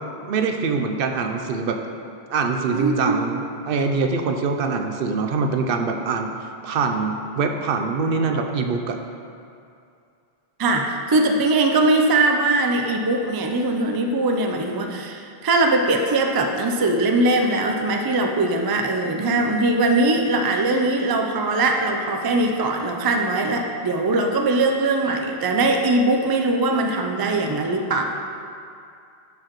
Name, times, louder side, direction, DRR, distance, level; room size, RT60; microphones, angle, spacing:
voice 1, 0.2-1.8 2.3-6.3 6.6-9.0, right 4 dB, 65° right, 4 dB, 0.7 m, -24 dB
voice 2, 2.7-3.3 10.6-28.0, right 2 dB, 40° right, 3 dB, 0.3 m, -21 dB
11.0 x 4.8 x 3.0 m, 2.5 s
omnidirectional pair, 1.0 m